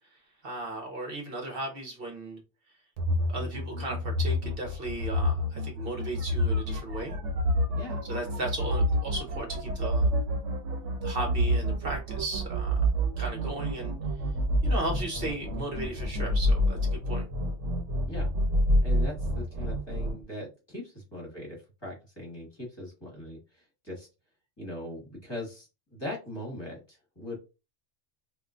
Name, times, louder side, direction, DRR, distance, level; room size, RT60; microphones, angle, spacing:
voice 1, 0.4-2.4 3.3-7.1 8.0-10.1 11.0-12.8 13.2-14.0 14.6-17.2, right 2 dB, 55° right, 1 dB, 0.9 m, -36 dB
sound 1, 3.0-20.2, equal, 75° right, 1.0 m, -28 dB
voice 2, 18.8-24.1 24.6-27.4, left 1 dB, 20° left, -3 dB, 1.2 m, -40 dB
3.6 x 2.4 x 2.4 m, 0.30 s
omnidirectional pair, 1.2 m